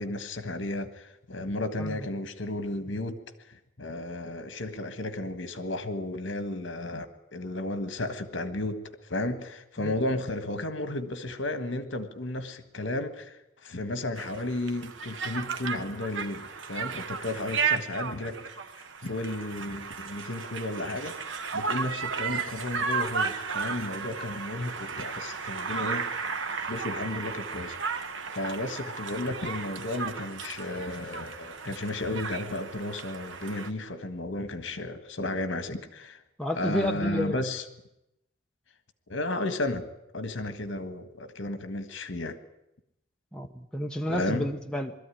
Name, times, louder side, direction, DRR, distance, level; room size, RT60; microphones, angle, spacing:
voice 1, 0.0-3.2 3.5-8.8 9.1-18.4 19.0-21.1 21.5-26.3 26.6-27.8 28.3-36.2 36.5-37.6 39.1-39.9 40.1-42.4 44.1-44.5, left 2 dB, 70° left, 11 dB, 1.6 m, -33 dB
Conversation, 14.2-33.7, right 5 dB, 75° right, 1.1 m, -34 dB
voice 2, 36.4-37.5 43.3-44.9, equal, 5° left, 2 dB, 0.9 m, -31 dB
21.5 x 13.5 x 10.0 m, 0.88 s
head